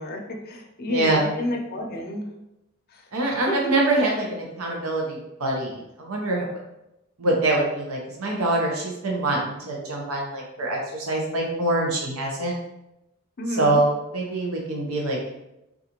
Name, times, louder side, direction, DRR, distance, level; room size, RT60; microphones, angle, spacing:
voice 1, 0.0-2.3 2.9-3.1 3.5-3.7 13.4-13.8, left 1 dB, 45° left, 2 dB, 0.6 m, -31 dB
voice 2, 0.9-1.3 3.1-6.5 7.2-12.5 13.6-15.2, right 2 dB, 80° right, -1 dB, 0.7 m, -24 dB
3.8 x 2.4 x 2.9 m, 0.90 s
head